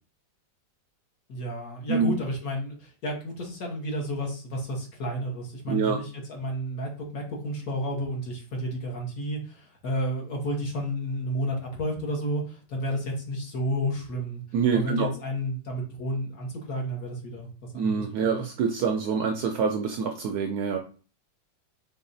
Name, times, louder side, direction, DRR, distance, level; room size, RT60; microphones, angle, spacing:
voice 1, 1.3-14.4 14.7-18.4, equal, 55° left, -1 dB, 1.6 m, -31 dB
voice 2, 5.7-6.0 14.5-15.1 17.7-20.8, right 6 dB, 70° right, 4 dB, 1.0 m, -26 dB
4.7 x 3.7 x 2.6 m, 0.37 s
omnidirectional pair, 2.0 m